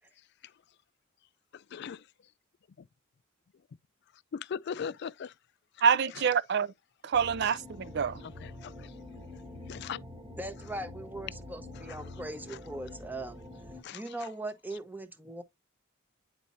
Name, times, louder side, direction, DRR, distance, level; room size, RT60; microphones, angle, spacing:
voice 1, 1.5-2.0 4.3-5.3 7.4-7.5 8.0-8.9 9.7-10.0 13.8-14.0, left 7 dB, 55° left, 0.3 m, -39 dB
voice 2, 5.8-6.7 7.0-8.2, right 6 dB, 55° right, 0.4 m, -26 dB
sound 1, 7.1-13.8, left 2 dB, 25° right, 1.2 m, -46 dB
voice 3, 10.4-13.4 13.9-15.4, right 1 dB, 10° right, 0.8 m, -40 dB
9.7 x 4.1 x 2.6 m
head